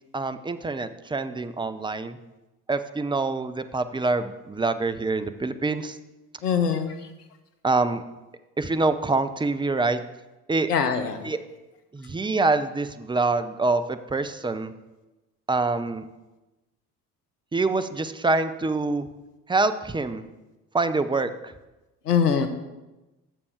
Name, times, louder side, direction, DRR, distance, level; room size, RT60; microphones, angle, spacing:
voice 1, 0.1-2.2 2.7-6.0 7.6-8.0 8.6-10.0 10.5-10.7 11.2-11.4 11.9-14.7 15.5-16.0 17.5-19.1 19.5-20.2 20.7-21.5, right 3 dB, 10° right, 10 dB, 0.6 m, -25 dB
voice 2, 6.4-7.0 10.7-11.2 22.1-22.5, left 7 dB, 90° left, 8 dB, 0.9 m, -22 dB
7.3 x 6.9 x 6.6 m, 1.1 s
hypercardioid pair, 55°, 46 cm